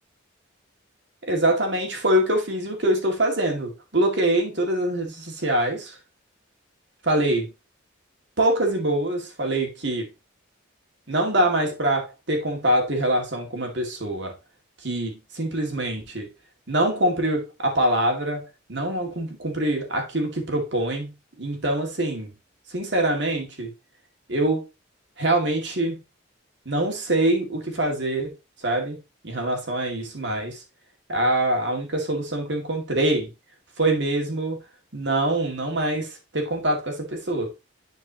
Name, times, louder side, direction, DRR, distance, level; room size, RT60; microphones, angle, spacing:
voice 1, 1.2-6.0 7.0-7.5 8.4-10.1 11.1-14.4 14.8-16.3 16.7-22.3 22.7-23.7 24.3-24.6 25.2-26.0 26.7-28.3 28.6-29.0 29.2-30.6 31.1-33.3 33.8-34.6 34.9-37.5, right 1 dB, 60° right, 2.1 m, -24 dB
10.0 x 4.6 x 2.9 m
head